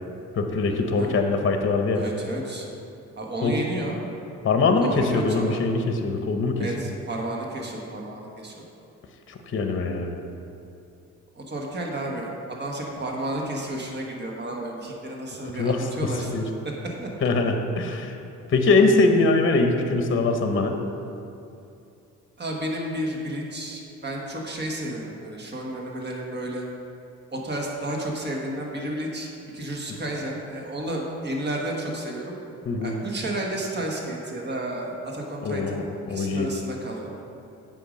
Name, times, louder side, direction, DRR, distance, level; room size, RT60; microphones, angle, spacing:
voice 1, 0.4-2.0 3.4-3.5 4.4-6.7 9.3-10.1 15.6-15.9 16.3-16.4 17.2-18.1 18.5-20.8 32.7-32.9 35.4-36.5, left 3 dB, 40° left, 5 dB, 0.8 m, -22 dB
voice 2, 1.9-2.7 3.2-4.0 4.8-5.6 6.6-8.6 11.3-16.3 16.6-17.1 22.4-26.6 27.3-32.3 32.8-37.2, right 1 dB, 35° right, 0 dB, 1.5 m, -32 dB
8.3 x 5.4 x 5.2 m, 2.7 s
cardioid pair, 90°, 30 cm